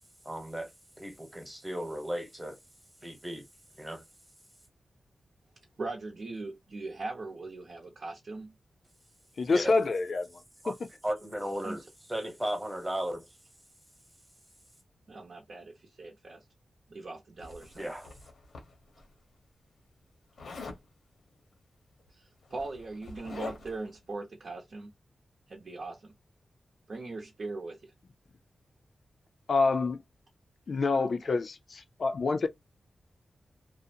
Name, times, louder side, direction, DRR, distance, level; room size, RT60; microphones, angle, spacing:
voice 1, 0.2-0.7 1.0-2.6 3.0-3.5 3.8-4.0 9.5-9.7 10.6-10.8 11.0-13.3 17.7-18.1, equal, 15° right, 1.0 m, -35 dB
voice 2, 5.8-8.5 11.6-11.8 15.1-16.5 16.9-17.9 22.1-24.9 25.5-26.1 26.9-27.9 31.2-31.3, right 3 dB, 60° right, 0.8 m, -40 dB
voice 3, 9.4-10.3 29.5-30.0 30.7-32.5, left 3 dB, 65° left, 0.5 m, -27 dB
Zipper (clothing), 17.4-19.0 20.4-20.8 22.0-22.1 22.4-23.9, left 3 dB, 90° left, 1.0 m, -44 dB
2.6 x 2.0 x 2.7 m
cardioid pair, 70°, 0 cm